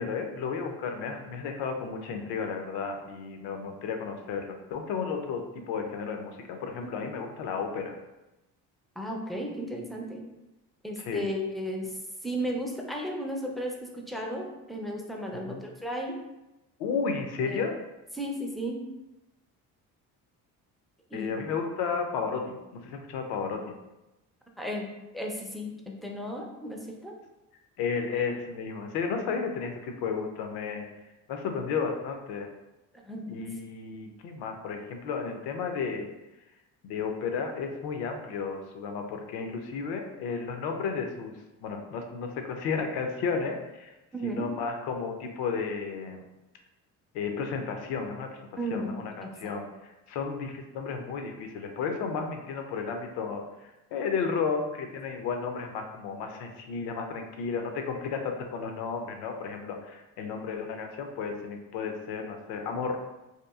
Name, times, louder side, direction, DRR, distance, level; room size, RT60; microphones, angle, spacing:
voice 1, 0.0-8.0 11.0-11.2 15.5-15.6 16.8-17.8 21.1-23.6 27.8-30.8 31.3-32.5 33.3-36.1 36.8-41.3 41.6-43.9 44.2-46.2 47.1-48.3 48.7-49.6 50.1-53.4 53.9-63.0, left 5 dB, 85° left, 4 dB, 0.5 m, -33 dB
voice 2, 9.0-10.2 10.8-16.2 17.5-17.7 18.1-18.8 21.1-21.4 24.6-24.9 25.1-27.1 33.0-33.4 44.1-44.5 48.6-49.6, equal, ahead, 0 dB, 0.3 m, -34 dB
2.9 x 2.3 x 2.3 m, 0.98 s
cardioid pair, 85°, 38 cm